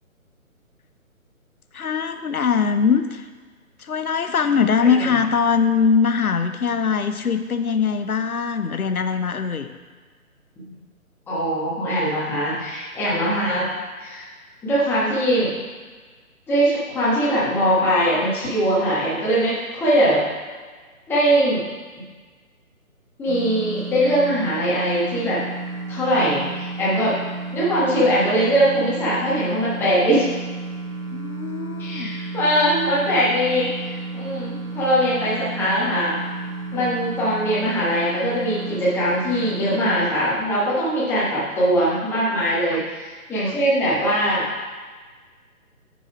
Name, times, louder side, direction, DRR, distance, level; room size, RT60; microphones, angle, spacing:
voice 1, 1.7-3.3 3.8-9.7 31.1-32.1 36.7-36.9 42.7-42.8 43.4-43.6, left 6 dB, 85° left, 9 dB, 0.7 m, -22 dB
voice 2, 11.3-13.7 14.0-14.2 14.6-15.5 16.5-20.2 21.1-21.6 23.2-25.4 25.9-27.1 27.5-30.2 31.8-36.2 36.7-44.5, equal, 5° left, -9 dB, 1.2 m, -21 dB
sound 1, 23.3-40.1, right 3 dB, 75° right, 1.5 m, -32 dB
9.3 x 4.2 x 4.7 m, 1.4 s
figure-of-eight pair, 140°, 43 cm